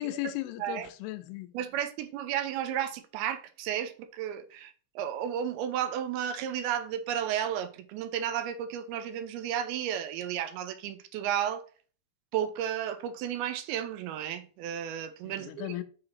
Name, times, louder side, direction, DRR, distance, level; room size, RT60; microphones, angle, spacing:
voice 1, 0.0-1.5 15.2-15.8, left 17 dB, 85° left, 2.5 m, -36 dB
voice 2, 1.5-11.6 12.3-15.7, right 10 dB, 85° right, 2.5 m, -33 dB
6.5 x 2.8 x 5.6 m
omnidirectional pair, 4.6 m